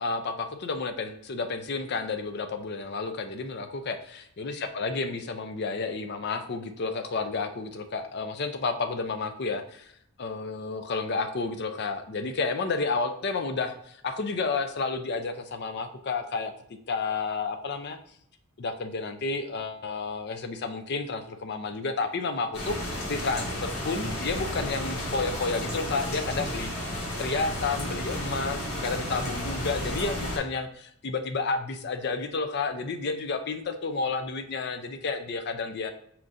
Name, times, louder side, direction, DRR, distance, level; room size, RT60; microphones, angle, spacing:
voice 1, 0.0-9.9 10.2-16.5 16.9-18.0 18.6-26.9 27.2-35.9, left 4 dB, 50° left, 8 dB, 0.4 m, -31 dB
sound 1, 22.5-30.4, left 1 dB, 85° left, 1.5 m, -33 dB
4.4 x 3.7 x 2.6 m, 0.68 s
head